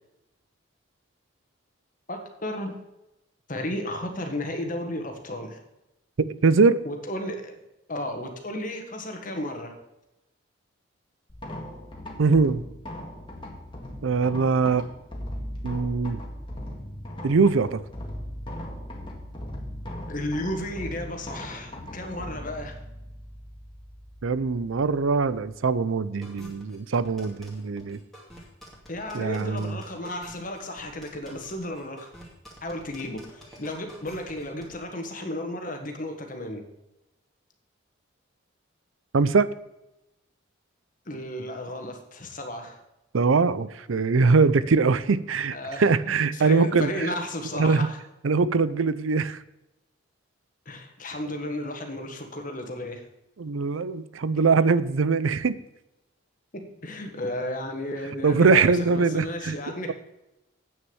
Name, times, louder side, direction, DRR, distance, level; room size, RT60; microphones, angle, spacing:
voice 1, 2.1-2.8 3.5-5.6 6.8-7.6 7.9-9.7 20.1-22.8 28.9-32.1 32.6-36.6 41.0-42.8 45.5-48.0 50.6-53.0 56.5-59.9, left 1 dB, 40° left, 4 dB, 1.6 m, -33 dB
voice 2, 6.2-6.8 12.2-12.6 14.0-14.9 15.6-16.2 17.2-17.8 24.2-28.0 29.1-29.8 39.1-39.5 43.1-47.1 47.5-47.9 48.2-49.4 53.4-55.6 58.2-59.6, right 4 dB, 80° right, 16 dB, 0.5 m, -22 dB
sound 1, 11.3-25.6, equal, 25° left, 1.8 m, -39 dB
sound 2, 26.2-34.8, equal, ahead, 2.4 m, -48 dB
8.9 x 6.5 x 7.1 m, 0.91 s
head